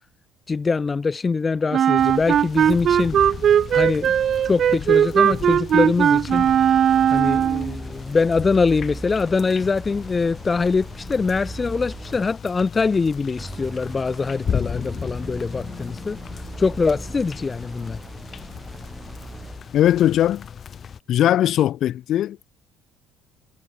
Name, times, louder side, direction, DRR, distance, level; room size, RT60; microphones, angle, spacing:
voice 1, 0.5-3.2 3.7-4.1 4.4-6.5 7.1-16.2 16.6-18.0, left 4 dB, 30° left, 0.6 m, -23 dB
Wind instrument woodwind instrument, 1.7-7.7, right 9 dB, 50° right, 1.0 m, -18 dB
sound 1, 2.0-21.0, left 7 dB, 45° left, 6.6 m, -36 dB
sound 2, 6.9-12.5 13.4-19.8, right 2 dB, 15° right, 6.2 m, -38 dB
voice 2, 19.7-20.5 21.1-22.4, left 12 dB, 60° left, 1.9 m, -19 dB
supercardioid pair, 75°, 0 cm